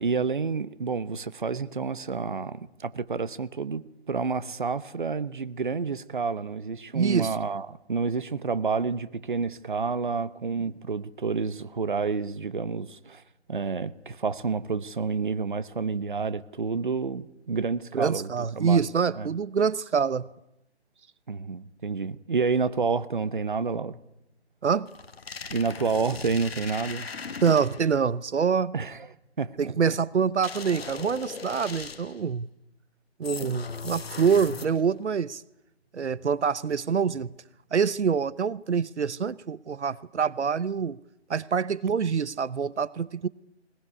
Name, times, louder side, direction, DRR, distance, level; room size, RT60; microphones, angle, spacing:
voice 1, 0.0-13.2 13.5-18.3 18.5-18.9 19.1-19.3 21.3-24.0 25.5-27.1 28.7-29.0 29.4-29.7, right 5 dB, 45° right, 1.0 m, -29 dB
voice 2, 6.9-7.4 10.7-10.8 17.9-20.3 24.6-24.9 27.4-28.7 29.6-32.5 33.2-35.4 35.9-37.3 37.7-41.0 41.3-43.3, right 6 dB, 80° right, 0.9 m, -25 dB
sound 1, 24.9-28.0 30.4-32.3 33.2-35.0, left 5 dB, 60° left, 1.5 m, -38 dB
20.5 x 20.5 x 9.8 m
hypercardioid pair, 175°, 34 cm